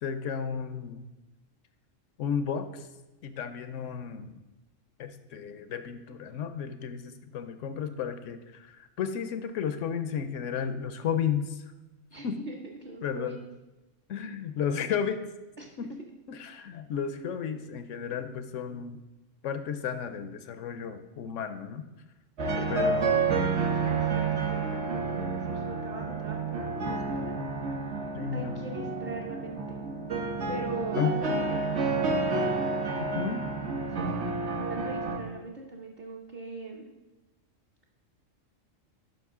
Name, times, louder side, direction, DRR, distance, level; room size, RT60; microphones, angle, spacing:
voice 1, 0.0-1.0 2.2-2.9 3.2-4.4 5.0-11.6 12.2-12.5 13.0-13.4 14.1-15.3 15.8-16.0 16.3-19.0 19.4-21.8 22.7-23.4 28.1-28.6 31.0-31.1 33.0-33.4, left 7 dB, 75° left, 10 dB, 1.0 m, -33 dB
voice 2, 12.1-12.6 12.8-13.4 14.2-14.3 15.6-15.7 22.5-22.6 23.8-27.4 28.3-30.0 30.5-32.6 33.9-36.9, right 3 dB, 40° right, -2 dB, 0.8 m, -41 dB
sound 1, 22.4-35.2, right 3 dB, 60° right, 1.2 m, -30 dB
11.5 x 5.2 x 3.6 m, 1.1 s
omnidirectional pair, 1.3 m